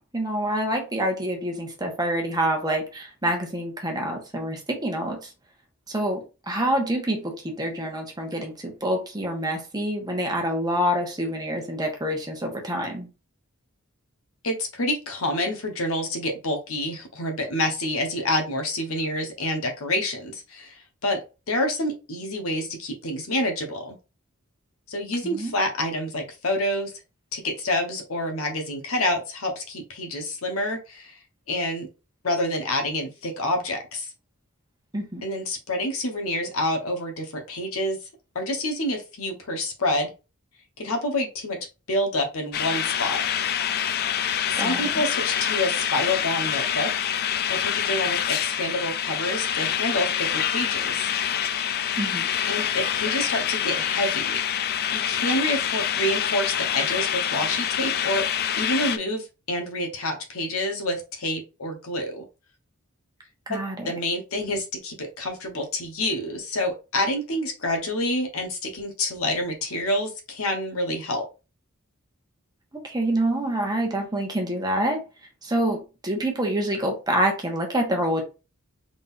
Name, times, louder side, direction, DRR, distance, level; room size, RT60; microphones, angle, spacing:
voice 1, 0.1-5.3 5.9-13.1 25.2-25.5 34.9-35.2 44.5-44.8 52.0-52.3 63.5-63.9 72.8-75.0 75.4-78.2, right 1 dB, 20° right, 1.2 m, -27 dB
voice 2, 14.4-24.0 24.9-26.9 27.3-31.2 31.5-31.9 32.2-34.1 35.2-38.0 38.3-40.1 40.8-41.6 41.9-43.3 44.5-46.9 47.5-51.1 52.5-54.4 54.9-58.3 58.6-62.2 63.5-63.6 63.9-71.3, left 1 dB, 75° left, 1.1 m, -28 dB
sound 1, 42.5-59.0, left 9 dB, 45° left, 0.3 m, -26 dB
3.9 x 3.7 x 2.6 m
head